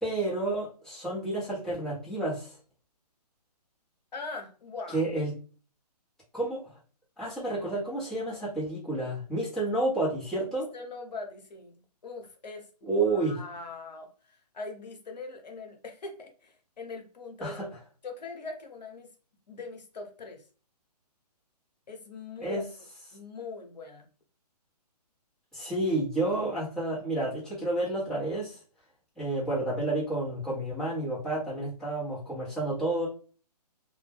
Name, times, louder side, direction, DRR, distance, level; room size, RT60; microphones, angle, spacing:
voice 1, 0.0-2.5 4.9-5.3 6.3-6.8 7.2-10.7 12.8-13.3 17.4-17.7 22.4-22.6 25.5-28.6 29.2-33.1, right 2 dB, ahead, -10 dB, 0.8 m, -30 dB
voice 2, 4.1-5.1 7.4-7.6 10.7-17.6 18.0-19.1 19.5-20.4 21.9-22.7 23.1-24.1, left 3 dB, 80° left, 3 dB, 0.8 m, -42 dB
2.2 x 2.1 x 3.3 m, 0.39 s
hypercardioid pair, 155°, 21 cm